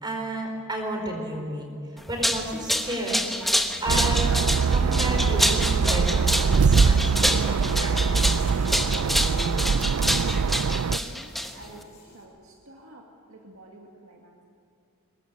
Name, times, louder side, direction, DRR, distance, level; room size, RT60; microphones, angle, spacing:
voice 1, 0.0-8.5, right 1 dB, 20° right, 2 dB, 4.6 m, -32 dB
sound 1, 2.0-11.8, equal, ahead, 1.1 m, -27 dB
Buzz, 3.2-12.2, equal, 30° left, 5.9 m, -48 dB
sound 2, 3.9-11.0, right 5 dB, 85° right, 0.5 m, -23 dB
voice 2, 8.8-14.4, right 1 dB, 65° right, 0 dB, 2.3 m, -48 dB
22.5 x 20.0 x 8.6 m, 2.4 s
head